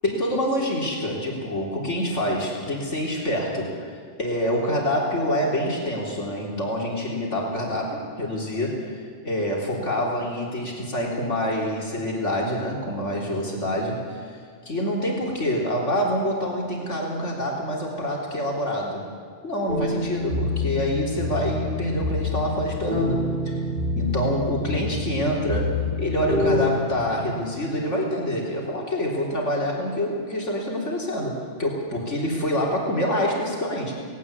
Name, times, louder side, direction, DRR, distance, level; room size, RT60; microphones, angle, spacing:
voice 1, 0.0-14.2 14.7-19.0 19.4-23.6 24.0-31.3 31.6-33.9, equal, 75° left, -2 dB, 4.0 m, -26 dB
sound 1, 19.7-26.7, left 2 dB, 50° right, 3.5 m, -27 dB
19.0 x 18.0 x 8.6 m, 2.1 s
omnidirectional pair, 1.3 m